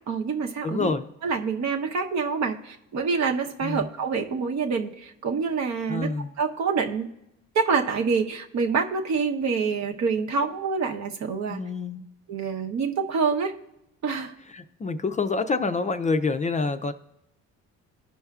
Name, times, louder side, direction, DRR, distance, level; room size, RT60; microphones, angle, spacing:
voice 1, 0.1-0.9 1.2-6.1 6.4-7.1 7.5-11.6 12.3-13.5 14.0-14.3, right 5 dB, 65° right, 3 dB, 0.9 m, -26 dB
voice 2, 0.6-1.0 3.6-3.9 5.9-6.3 11.5-12.0 14.5-16.9, left 3 dB, 25° left, 9 dB, 0.4 m, -27 dB
16.0 x 5.5 x 2.4 m, 0.86 s
cardioid pair, 90°, 30 cm